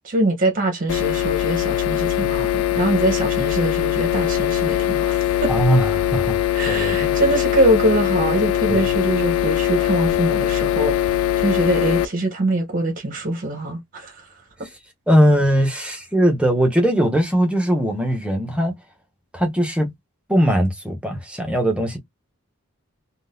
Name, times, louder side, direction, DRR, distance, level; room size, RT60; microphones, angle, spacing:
voice 1, 0.0-5.5 6.5-14.3, right 1 dB, 40° right, 0.8 m, -23 dB
sound 1, 0.9-12.1, left 12 dB, 80° left, 0.3 m, -21 dB
voice 2, 5.5-7.1 8.7-8.8 15.1-18.7 19.3-19.9 20.3-22.0, equal, 5° right, 0.7 m, -20 dB
3.7 x 2.3 x 2.5 m
head